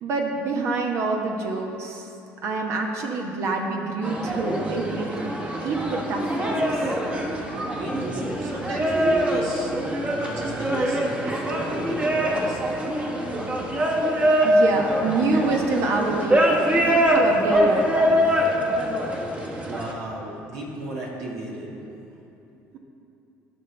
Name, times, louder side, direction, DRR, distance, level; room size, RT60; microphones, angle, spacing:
voice 1, 0.0-2.1 2.4-6.8 14.4-18.6, right 3 dB, 60° right, 2 dB, 1.1 m, -27 dB
sound 1, 4.0-19.9, equal, 25° right, 1.2 m, -24 dB
voice 2, 7.7-9.7 10.2-12.8 19.6-21.7, right 2 dB, 80° right, -3 dB, 2.0 m, -33 dB
15.0 x 5.6 x 3.4 m, 2.9 s
supercardioid pair, 90°, 5 cm